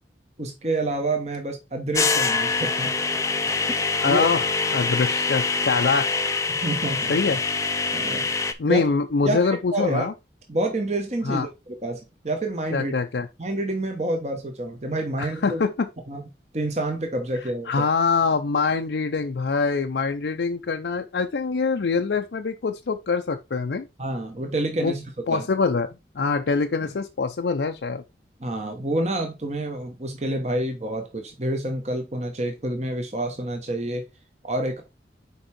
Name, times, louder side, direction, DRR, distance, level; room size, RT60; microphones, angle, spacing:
voice 1, 0.4-2.9 3.7-4.3 6.5-7.1 7.9-8.3 8.7-8.9 9.2-9.4 9.7-10.1 10.5-12.9 13.4-15.6 16.1-16.3 16.5-17.8 24.0-25.0 25.3-25.5 28.4-34.0 34.4-34.8, right 1 dB, 40° right, 1.1 m, -28 dB
sound 1, 1.9-8.5, left 4 dB, 15° left, 0.4 m, -25 dB
voice 2, 4.0-6.1 7.1-7.4 8.2-10.1 11.2-11.5 12.7-13.3 15.2-15.9 17.7-23.9 24.8-25.0 25.3-28.0, left 4 dB, 75° left, 0.5 m, -24 dB
5.3 x 4.7 x 4.3 m
head